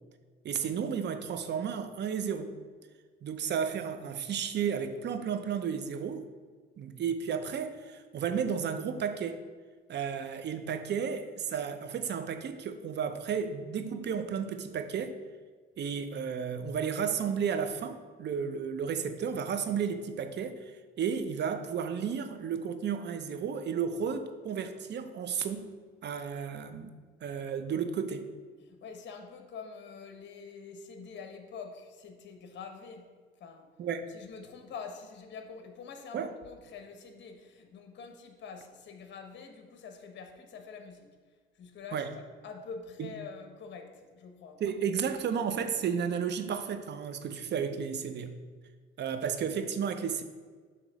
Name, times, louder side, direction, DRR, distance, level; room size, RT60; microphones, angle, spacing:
voice 1, 0.4-2.6 3.2-6.3 6.8-9.4 9.9-15.2 15.8-25.7 26.0-26.9 27.2-28.3 33.8-34.1 36.1-36.3 41.9-42.1 43.0-43.1 44.6-48.3 49.0-50.2, right 7 dB, 60° right, 9 dB, 0.7 m, -33 dB
voice 2, 28.6-33.1 33.4-33.7 34.1-41.1 41.5-44.6, left 5 dB, 65° left, 4 dB, 1.0 m, -46 dB
7.9 x 3.0 x 6.1 m, 1.5 s
cardioid pair, 90°, 20 cm